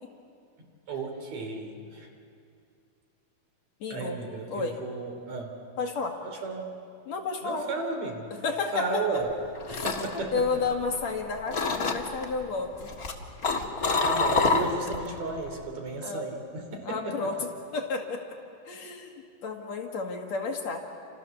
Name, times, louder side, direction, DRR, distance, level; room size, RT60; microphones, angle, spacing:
voice 1, 0.9-2.1 3.9-5.6 6.2-6.7 7.4-8.3 8.7-9.3 9.7-10.4 14.0-17.3, right 3 dB, 60° right, 3 dB, 4.4 m, -34 dB
voice 2, 3.8-4.2 4.5-4.8 5.8-6.2 7.1-7.7 8.3-9.0 9.7-9.9 10.1-12.9 16.0-16.2 16.9-17.4 17.7-18.4 18.7-19.1 19.4-20.8, left 4 dB, 60° left, 2 dB, 3.1 m, -31 dB
sound 1, 9.3-11.2 11.5-12.2 12.8-15.1 15.4-15.7, left 4 dB, 35° left, 1.8 m, -27 dB
29.5 x 27.5 x 7.1 m, 2.4 s
omnidirectional pair, 3.6 m